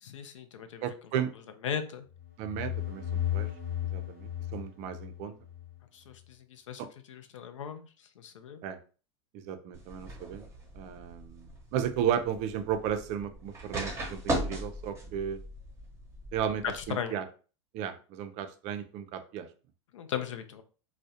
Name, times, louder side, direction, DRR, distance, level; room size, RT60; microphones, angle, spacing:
voice 1, 0.0-0.8 1.6-2.1 5.9-6.8 7.1-7.9 8.2-8.6 16.6-17.2 19.9-20.6, left 8 dB, 85° left, 9 dB, 0.4 m, -37 dB
voice 2, 0.8-1.3 2.4-3.5 3.8-5.3 8.6-8.8 9.3-10.5 10.7-15.4 16.3-17.2 17.7-19.5, right 9 dB, 45° right, 9 dB, 0.4 m, -34 dB
sound 1, 2.1-5.8, left 11 dB, 50° left, 1.0 m, -35 dB
sound 2, 9.7-16.9, right 1 dB, 15° right, 0.8 m, -38 dB
2.3 x 2.1 x 2.7 m, 0.37 s
hypercardioid pair, 105°, 16 cm